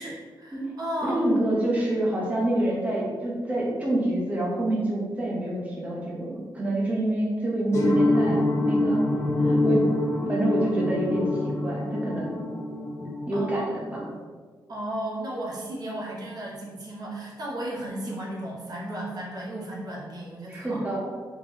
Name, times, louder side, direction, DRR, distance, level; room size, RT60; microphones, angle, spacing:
voice 1, 0.0-1.2 13.3-13.9 14.7-20.8, right 1 dB, 50° right, -4 dB, 0.9 m, -34 dB
voice 2, 1.0-9.0 9.4-9.9 10.3-12.4 13.3-13.6 13.9-14.1 20.5-21.1, right 1 dB, 20° right, -5 dB, 0.9 m, -27 dB
sound 1, 7.7-13.9, left 2 dB, 35° left, 0.7 m, -25 dB
3.7 x 3.2 x 3.0 m, 1.5 s
wide cardioid pair, 170°, 8 cm